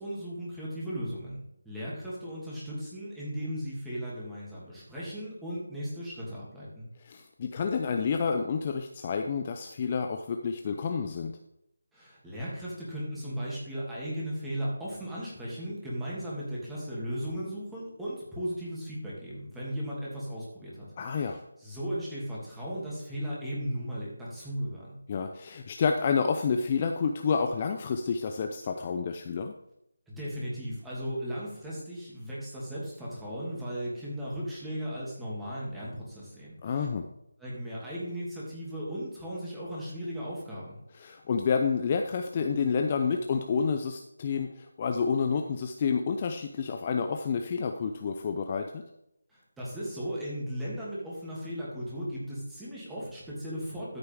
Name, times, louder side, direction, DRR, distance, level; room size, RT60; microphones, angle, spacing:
voice 1, 0.0-6.9 11.9-20.9 21.1-25.0 30.1-36.9 37.4-40.8 49.3-54.0, equal, 5° right, -8 dB, 2.6 m, -36 dB
voice 2, 7.0-11.4 21.0-21.4 25.1-29.5 36.6-37.1 40.9-48.8, left 5 dB, 30° left, 4 dB, 0.6 m, -29 dB
13.0 x 6.6 x 3.6 m, 0.79 s
figure-of-eight pair, 165°, 0 cm